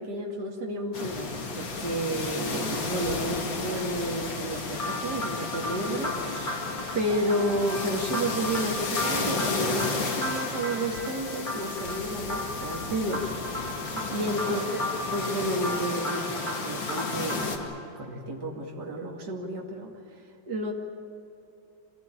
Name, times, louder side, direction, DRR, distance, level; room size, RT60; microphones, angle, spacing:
voice 1, 0.0-6.7 6.9-13.3 13.6-14.6 15.1-19.9 20.5-20.7, right 1 dB, 60° right, -1 dB, 2.9 m, -31 dB
sound 1, 0.9-17.6, left 3 dB, 75° left, 2.9 m, -33 dB
sound 2, 4.8-17.7, left 1 dB, 25° left, 5.5 m, -35 dB
27.0 x 17.5 x 8.9 m, 2.9 s
omnidirectional pair, 2.1 m